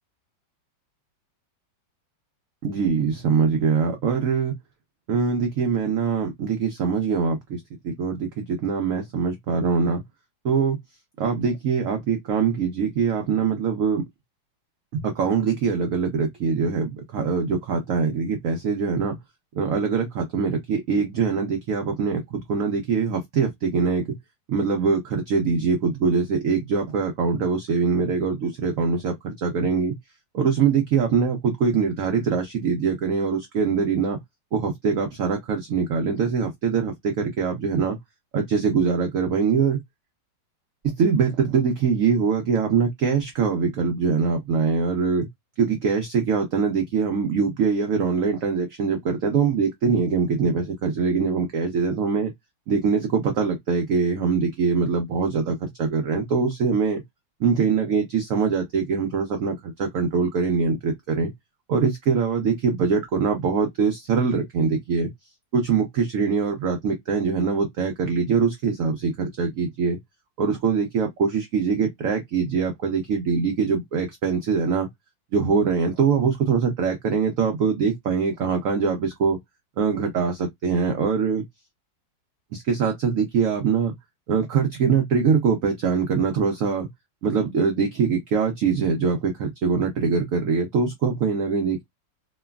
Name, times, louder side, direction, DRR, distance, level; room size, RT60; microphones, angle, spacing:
voice 1, 2.6-4.6 5.1-10.0 10.4-10.8 11.2-14.0 14.9-19.2 19.5-24.2 24.5-30.0 30.3-34.2 34.5-38.0 38.3-39.8 40.8-45.3 45.6-52.3 52.7-57.0 57.4-61.3 61.7-65.1 65.5-70.0 70.4-74.9 75.3-79.4 79.8-81.4 82.5-84.0 84.3-86.9 87.2-91.8, right 5 dB, 80° right, 0.7 m, -23 dB
3.1 x 2.2 x 2.2 m
omnidirectional pair, 2.1 m